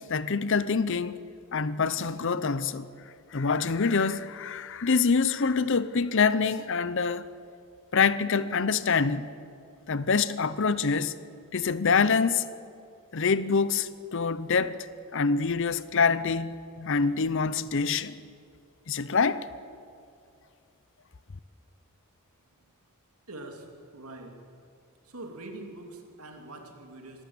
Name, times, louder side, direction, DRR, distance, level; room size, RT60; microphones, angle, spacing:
voice 1, 0.1-1.2 1.5-2.9 3.3-7.3 7.9-9.3 9.9-11.1 11.5-12.5 13.1-14.8 15.1-18.1 18.9-19.5, left 5 dB, 55° left, 0.7 m, -25 dB
voice 2, 23.3-24.6 25.0-27.2, right 2 dB, 80° right, 2.8 m, -44 dB
25.0 x 12.5 x 8.7 m
head